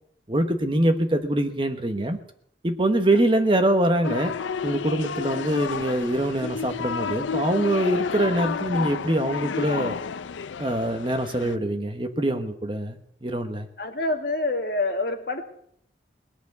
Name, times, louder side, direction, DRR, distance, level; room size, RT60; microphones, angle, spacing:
voice 1, 0.3-2.2 2.6-4.3 4.6-10.0 10.6-13.7, right 1 dB, 25° right, 7 dB, 1.1 m, -24 dB
sound 1, 4.0-11.6, left 6 dB, 90° left, 0.5 m, -31 dB
voice 2, 13.8-15.4, left 2 dB, 55° left, 4 dB, 1.9 m, -26 dB
19.5 x 7.0 x 9.5 m, 0.68 s
head